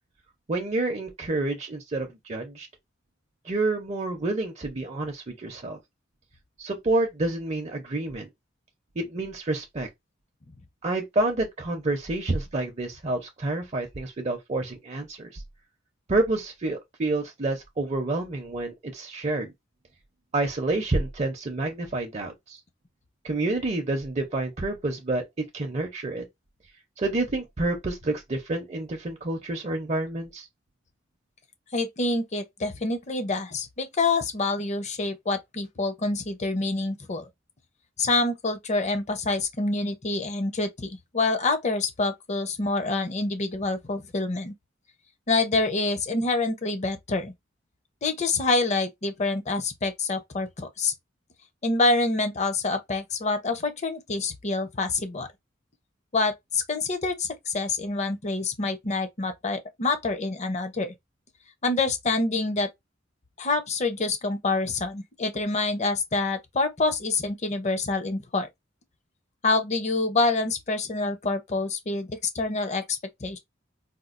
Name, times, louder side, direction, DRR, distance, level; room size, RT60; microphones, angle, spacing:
voice 1, 0.5-2.7 3.4-5.8 6.6-8.3 9.0-9.9 10.8-15.4 16.1-19.5 20.3-22.6 23.2-26.2 27.0-30.5, right 2 dB, 35° right, 0.6 m, -28 dB
voice 2, 31.7-37.3 38.0-44.5 45.3-47.3 48.0-50.9 51.6-55.3 56.1-60.9 61.6-62.7 63.4-68.5 69.4-73.4, left 3 dB, 35° left, 0.6 m, -26 dB
4.2 x 2.3 x 2.5 m
head